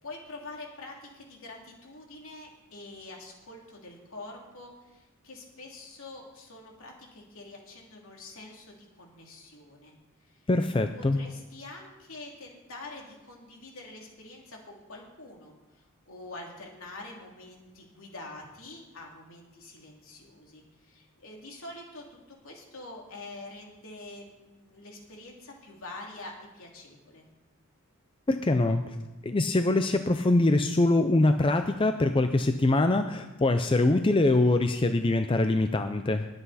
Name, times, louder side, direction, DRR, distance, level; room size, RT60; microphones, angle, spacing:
voice 1, 0.0-9.9 10.3-10.5 11.0-27.3, left 2 dB, 70° left, 0 dB, 2.8 m, -46 dB
voice 2, 10.5-11.2 28.3-28.9 29.2-36.3, left 2 dB, 25° left, 7 dB, 0.5 m, -24 dB
20.5 x 8.0 x 4.1 m, 1.1 s
head